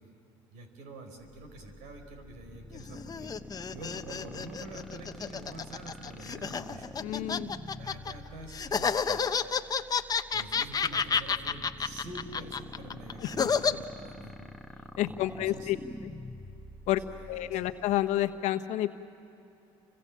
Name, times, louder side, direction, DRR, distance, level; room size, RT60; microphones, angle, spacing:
voice 1, 0.5-3.3 3.7-7.0 7.8-9.2 10.3-14.3 15.0-15.7 17.1-17.7, right 2 dB, 75° right, 6 dB, 4.5 m, -46 dB
sound 1, 1.2-18.4, left 1 dB, ahead, 1.4 m, -47 dB
sound 2, 2.7-8.1 8.5-13.7, left 6 dB, 30° left, 1.0 m, -30 dB
voice 2, 7.0-7.5 13.2-13.5 15.0-15.8 16.0-16.1 16.9-17.0 17.3-18.9, left 14 dB, 65° left, 7 dB, 1.2 m, -30 dB
29.5 x 25.5 x 7.3 m, 2.8 s
supercardioid pair, 80°, 13 cm